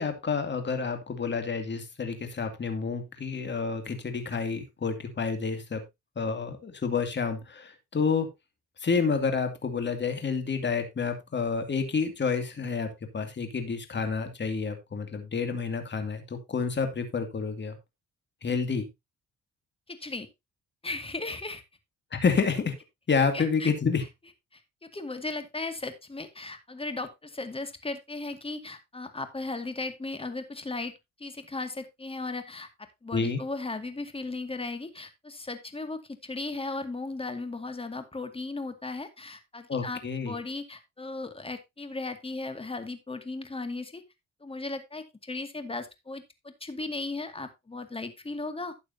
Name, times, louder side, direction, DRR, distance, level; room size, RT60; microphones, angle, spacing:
voice 1, 0.0-5.8 6.2-8.3 8.8-12.9 13.1-17.8 18.4-18.9 22.1-22.7 23.1-24.0 33.1-33.4 39.7-40.3, left 5 dB, 35° left, 7 dB, 2.5 m, -29 dB
voice 2, 19.9-20.3 20.8-21.6 23.3-23.7 24.5-30.9 31.2-44.0 44.4-48.7, left 3 dB, 20° left, 9 dB, 2.2 m, -36 dB
12.0 x 8.4 x 2.8 m, 0.21 s
cardioid pair, 90°, 30 cm